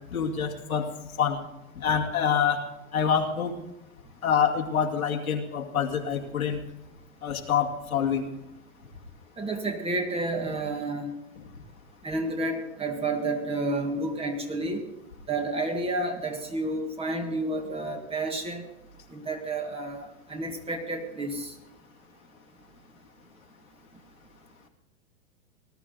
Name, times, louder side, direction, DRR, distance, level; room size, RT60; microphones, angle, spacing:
voice 1, 0.1-0.9 1.2-1.4 1.8-2.6 2.9-3.5 4.2-6.6 7.2-8.3, left 7 dB, 90° left, 2 dB, 2.3 m, -26 dB
voice 2, 9.4-11.1 12.0-14.8 15.3-18.6 19.1-21.5, right 2 dB, 15° right, 5 dB, 1.8 m, -30 dB
19.5 x 12.5 x 3.9 m, 0.93 s
hypercardioid pair, 120°, 41 cm